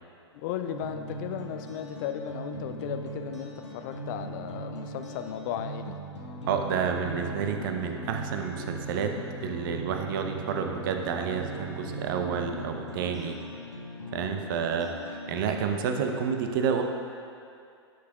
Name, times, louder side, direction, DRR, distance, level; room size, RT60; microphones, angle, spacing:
voice 1, 0.4-5.9, left 9 dB, 45° left, 8 dB, 0.4 m, -35 dB
sound 1, 0.6-15.4, right 1 dB, 80° left, 1.0 m, -39 dB
voice 2, 6.5-9.2 9.4-13.4 14.1-14.9 15.3-16.8, right 6 dB, 50° right, 4 dB, 0.6 m, -29 dB
9.3 x 6.4 x 2.3 m, 2.4 s
figure-of-eight pair, 100°, 15 cm